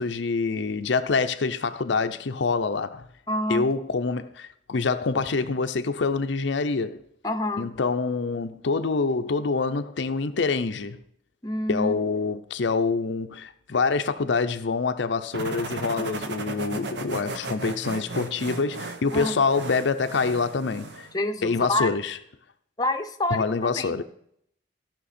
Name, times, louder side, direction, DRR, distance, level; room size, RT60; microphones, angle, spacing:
voice 1, 0.0-3.1 3.5-7.0 7.6-11.0 11.7-21.1 21.4-22.2 23.3-24.0, left 4 dB, 75° left, 0.6 m, -26 dB
voice 2, 3.3-3.6 7.2-7.6 11.4-11.9 19.1-19.3 21.1-21.9 22.8-24.0, left 1 dB, 20° left, 0.7 m, -27 dB
sound 1, 15.3-21.1, right 3 dB, 65° right, 0.9 m, -35 dB
16.0 x 5.9 x 4.2 m
head